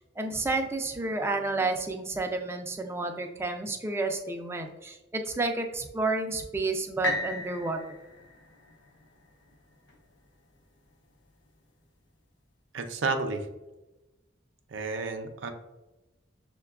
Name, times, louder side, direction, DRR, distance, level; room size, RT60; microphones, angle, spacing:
voice 1, 0.2-7.8, right 3 dB, 15° right, 4 dB, 0.3 m, -30 dB
sound 1, 7.0-11.0 11.6-11.7, left 1 dB, 75° left, 0.6 m, -37 dB
voice 2, 12.7-13.5 14.7-15.5, right 3 dB, 90° right, 6 dB, 0.5 m, -31 dB
6.4 x 2.2 x 2.3 m, 1.1 s
head